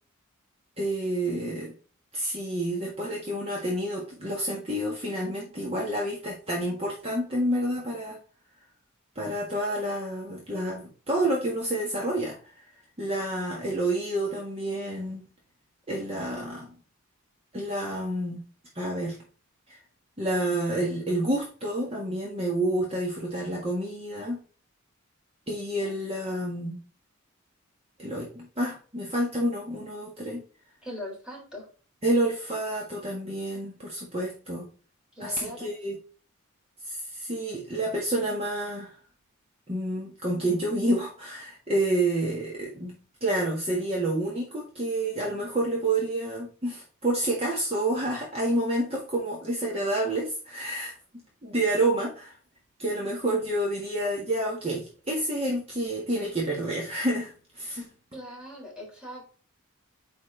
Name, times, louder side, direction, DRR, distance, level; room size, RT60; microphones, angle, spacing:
voice 1, 0.8-1.7 2.1-8.2 9.1-12.7 13.0-15.3 15.9-16.7 17.5-18.4 18.7-19.2 19.7-19.8 20.2-24.4 25.5-26.8 28.0-30.4 32.0-34.7 35.2-36.0 36.8-39.0 39.7-50.9 51.4-52.3 52.8-57.9, right 1 dB, 30° right, -3 dB, 1.6 m, -29 dB
voice 2, 30.8-31.6 35.2-35.7 58.1-59.3, left 1 dB, 5° right, -3 dB, 3.6 m, -41 dB
9.3 x 4.3 x 3.3 m, 0.39 s
head